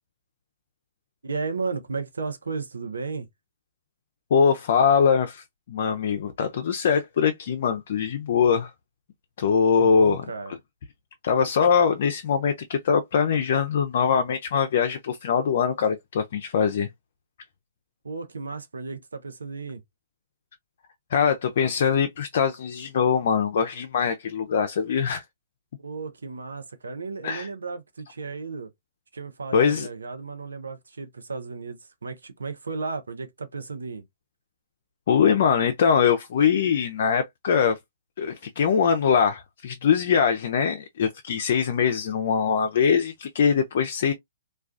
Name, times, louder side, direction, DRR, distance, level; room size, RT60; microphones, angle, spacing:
voice 1, 1.2-3.3 9.8-10.5 18.0-19.8 25.8-28.7 29.1-34.0, right 4 dB, 90° right, 0.6 m, -34 dB
voice 2, 4.3-8.7 9.4-10.2 11.2-16.9 21.1-25.2 27.2-27.5 29.5-29.9 35.1-37.8 38.2-44.1, left 6 dB, 60° left, 0.4 m, -22 dB
2.3 x 2.2 x 2.4 m
hypercardioid pair, 130°, 0 cm